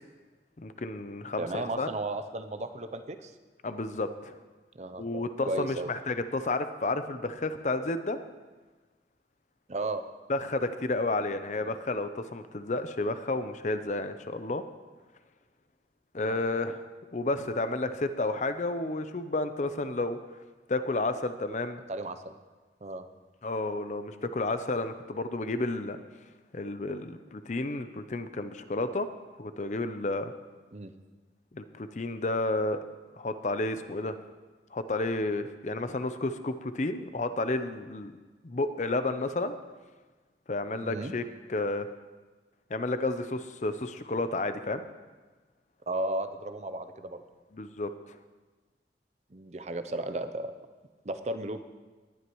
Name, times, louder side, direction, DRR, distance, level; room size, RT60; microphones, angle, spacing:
voice 1, 0.6-1.9 3.6-4.4 5.0-8.2 10.3-14.6 16.1-16.8 17.1-20.2 20.7-21.8 23.4-26.0 26.5-29.1 29.4-30.3 31.5-32.8 33.2-34.2 34.7-38.1 38.4-39.6 40.5-41.2 41.5-41.9 42.7-44.8 47.5-47.9, left 2 dB, 40° left, 10 dB, 0.6 m, -31 dB
voice 2, 1.4-3.3 4.7-5.9 9.7-10.0 11.7-11.8 16.2-16.4 21.9-22.3 22.8-23.0 30.7-30.9 40.8-41.2 45.9-47.2 49.3-50.7 51.0-51.6, right 2 dB, 40° right, 9 dB, 0.6 m, -34 dB
19.0 x 11.5 x 3.1 m, 1.3 s
head